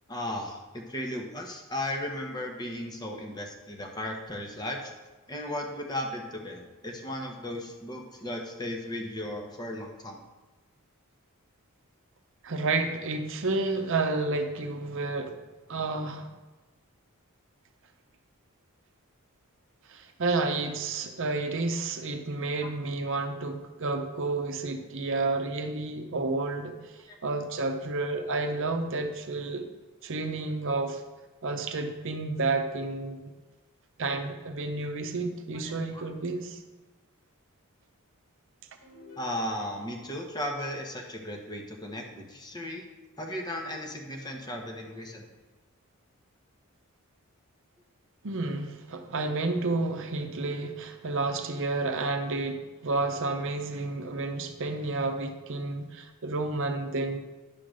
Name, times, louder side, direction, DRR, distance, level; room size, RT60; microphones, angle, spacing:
voice 1, 0.1-4.9 5.3-10.2 22.6-22.7 27.1-27.2 35.5-36.0 39.2-42.8 43.2-45.2, left 1 dB, 20° left, 2 dB, 1.0 m, -36 dB
voice 2, 12.4-15.4 15.7-16.3 19.9-29.6 30.0-31.0 31.4-33.3 34.0-36.6 48.2-57.2, right 3 dB, 60° right, 6 dB, 0.7 m, -30 dB
sound 1, 38.8-40.3, left 3 dB, 90° left, 3.2 m, -51 dB
10.0 x 3.8 x 6.3 m, 1.2 s
head